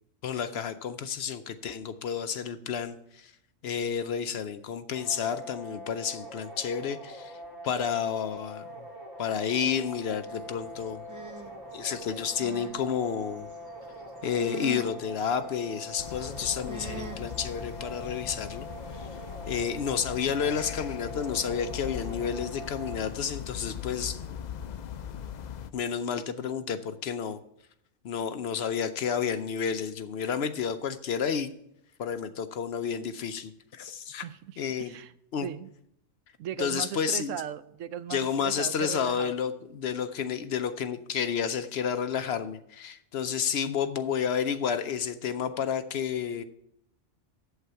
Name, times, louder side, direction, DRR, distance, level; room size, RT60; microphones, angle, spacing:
voice 1, 0.2-3.3 3.6-7.4 7.6-8.9 9.2-11.0 11.7-13.5 14.2-18.7 18.9-19.1 19.5-24.4 25.7-27.4 28.0-31.5 32.0-34.2 34.6-34.9 35.3-35.5 36.6-37.4 38.1-46.4, left 7 dB, 60° left, 10 dB, 0.8 m, -31 dB
sound 1, 4.9-22.9, equal, 65° right, 3.6 m, -43 dB
sound 2, 10.2-17.8, right 2 dB, 20° right, 0.7 m, -45 dB
sound 3, 16.0-25.7, left 9 dB, 80° left, 0.4 m, -40 dB
voice 2, 34.2-35.1 35.4-35.7 36.4-39.3, right 10 dB, 85° right, 15 dB, 0.9 m, -38 dB
8.1 x 7.7 x 5.6 m, 0.76 s
omnidirectional pair, 1.3 m